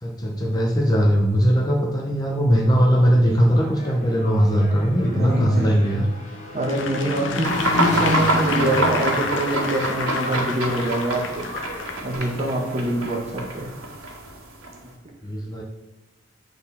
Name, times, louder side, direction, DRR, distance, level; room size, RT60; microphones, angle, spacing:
voice 1, 0.0-6.1 15.2-15.6, equal, 20° left, 1 dB, 0.6 m, -19 dB
Engine, 3.3-12.2, left 1 dB, 35° left, 1.4 m, -32 dB
voice 2, 3.3-3.7 5.1-5.7 6.5-7.5 7.8-11.5 12.0-13.7, right 1 dB, 30° right, -1 dB, 1.3 m, -25 dB
Applause / Crowd, 6.6-12.4 12.9-13.0, left 5 dB, 60° left, 0.6 m, -32 dB
sound 1, 7.4-14.9, right 1 dB, 90° right, 1.7 m, -27 dB
7.8 x 4.1 x 4.2 m, 1.0 s
head